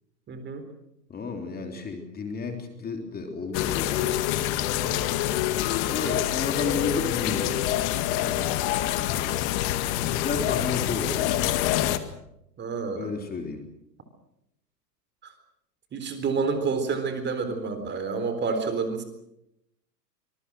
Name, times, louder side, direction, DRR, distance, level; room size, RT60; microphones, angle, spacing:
voice 1, 0.3-0.6 4.8-5.1 12.6-13.1 15.2-15.3 15.9-19.0, right 4 dB, 20° right, 8 dB, 4.0 m, -29 dB
voice 2, 1.1-4.2 5.8-7.6 8.2-8.6 10.0-11.5 13.0-13.6, left 4 dB, 20° left, 4 dB, 3.6 m, -32 dB
sound 1, 3.5-12.0, left 13 dB, 40° left, 2.0 m, -26 dB
25.0 x 22.5 x 6.4 m, 0.82 s
hypercardioid pair, 110°, 50 cm